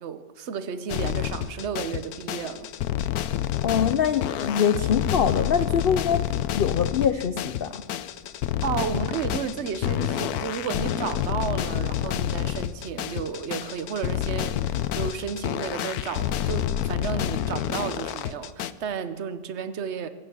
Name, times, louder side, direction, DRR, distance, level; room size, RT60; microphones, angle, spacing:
voice 1, 0.0-2.7 3.2-3.3 8.6-20.1, right 7 dB, 55° right, 1.1 m, -32 dB
sound 1, 0.9-18.7, left 11 dB, 85° left, 1.1 m, -28 dB
voice 2, 3.6-6.2 6.5-7.8, left 7 dB, 65° left, 0.5 m, -24 dB
23.5 x 9.2 x 6.3 m
omnidirectional pair, 1.6 m